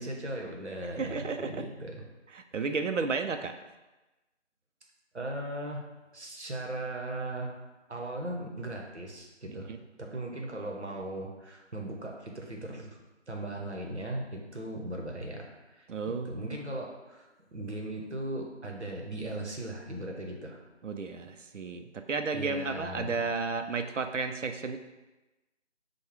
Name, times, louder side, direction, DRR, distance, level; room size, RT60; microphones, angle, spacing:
voice 1, 0.0-2.0 2.6-2.7 5.1-5.8 6.1-7.6 7.9-9.7 10.0-13.0 13.3-20.6 22.3-23.2, right 1 dB, 70° right, 1 dB, 1.0 m, -38 dB
voice 2, 1.0-1.6 2.3-3.5 9.7-9.8 15.9-16.5 20.8-24.8, right 4 dB, 85° right, 7 dB, 0.6 m, -33 dB
4.6 x 2.3 x 4.6 m, 1.1 s
figure-of-eight pair, 170°, 36 cm